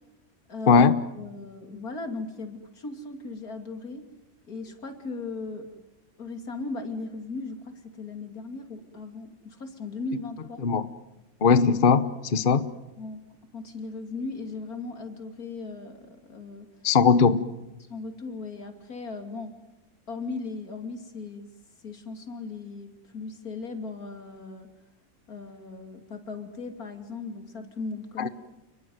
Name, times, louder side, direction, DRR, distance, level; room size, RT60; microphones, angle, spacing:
voice 1, 0.5-0.8 1.1-4.0 4.5-5.7 6.2-10.6 13.0-13.2 13.5-16.7 17.9-19.5 20.1-21.5 21.8-24.7 25.3-28.3, left 3 dB, 85° left, 7 dB, 3.3 m, -37 dB
voice 2, 11.4-12.6 16.8-17.4 28.2-28.3, left 5 dB, 40° left, 13 dB, 1.1 m, -19 dB
29.5 x 20.5 x 9.4 m, 1.0 s
omnidirectional pair, 1.5 m